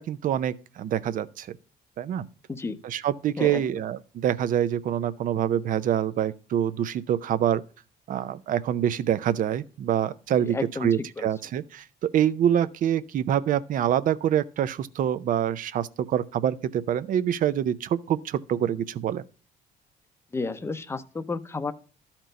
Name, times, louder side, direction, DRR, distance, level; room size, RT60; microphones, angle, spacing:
voice 1, 0.0-1.5 2.0-2.3 2.8-7.6 8.1-19.2, right 10 dB, 55° right, 0.5 m, -26 dB
voice 2, 10.4-11.3 20.3-21.7, left 3 dB, 15° left, 0.6 m, -32 dB
12.5 x 4.4 x 5.1 m
cardioid pair, 110°, 17 cm